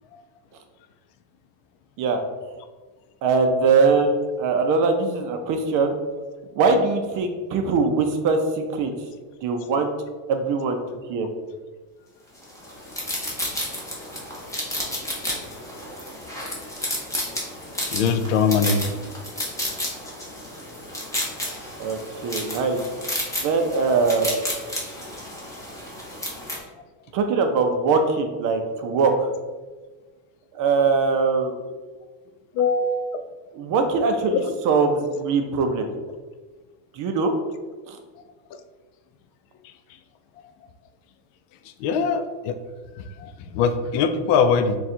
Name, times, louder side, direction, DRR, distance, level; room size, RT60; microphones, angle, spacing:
voice 1, 3.2-4.1 4.4-5.9 6.6-8.9 9.4-9.9 10.3-10.8 11.1-11.3 21.8-22.8 23.4-24.5 27.1-29.3 30.5-31.6 33.5-35.9 36.9-37.3 37.9-38.0, right 4 dB, 45° right, 5 dB, 0.4 m, -22 dB
sound 1, 12.4-26.6, left 1 dB, 5° left, 0.7 m, -32 dB
voice 2, 17.9-19.0 32.5-33.0 34.3-34.5 38.5-38.6 41.8-42.6 43.0-44.8, left 5 dB, 70° left, 9 dB, 0.5 m, -22 dB
3.7 x 2.3 x 4.2 m, 1.3 s
cardioid pair, 145°, 48 cm